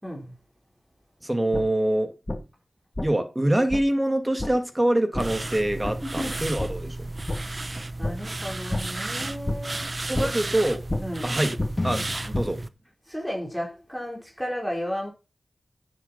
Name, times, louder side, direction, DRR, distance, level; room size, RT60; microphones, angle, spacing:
voice 1, 0.0-0.3 5.8-6.3 8.0-9.9 10.2-10.3 11.0-11.4 13.1-15.1, equal, ahead, 4.4 m, -33 dB
voice 2, 1.2-2.1 3.0-7.1 10.1-10.8 11.2-11.5 11.8-12.6, right 1 dB, 20° right, 2.3 m, -25 dB
sound 1, 1.5-1.6 2.3-2.4 2.9-3.1 3.7-3.8 4.4-4.5 5.1-5.2 5.8-5.9 6.6-6.7 7.3-7.4 8.0-8.1 8.7-8.8 9.4-9.6 10.1-10.3 10.9-11.0 11.6-12.5, left 2 dB, 25° left, 2.3 m, -28 dB
sound 2, 5.2-12.7, right 2 dB, 40° right, 0.9 m, -33 dB
9.9 x 7.4 x 5.5 m
cardioid pair, 55°, 0 cm